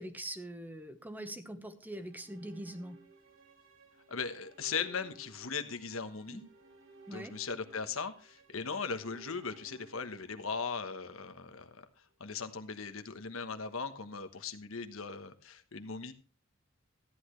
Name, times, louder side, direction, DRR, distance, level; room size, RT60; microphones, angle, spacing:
voice 1, 0.0-3.0 6.3-6.4 7.1-7.3, right 1 dB, 10° right, 9 dB, 1.1 m, -43 dB
sound 1, 1.8-12.0, right 3 dB, 75° right, 2.8 m, -58 dB
voice 2, 4.1-6.4 7.1-11.8 12.2-16.1, left 5 dB, 85° left, 9 dB, 1.2 m, -38 dB
14.0 x 10.5 x 3.2 m, 0.35 s
head